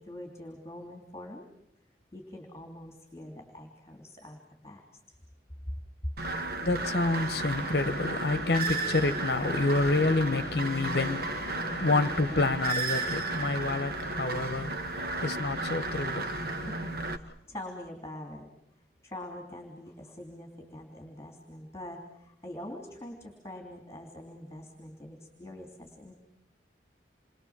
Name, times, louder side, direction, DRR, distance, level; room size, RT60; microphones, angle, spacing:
voice 1, 0.0-1.4 2.1-4.8 5.6-5.7 16.6-18.5 19.0-26.1, left 1 dB, 15° left, 3.2 m, -44 dB
voice 2, 6.2-16.7, left 2 dB, 60° left, 1.0 m, -29 dB
sound 1, 6.2-17.2, right 3 dB, 55° right, 1.4 m, -33 dB
28.5 x 23.0 x 7.4 m
head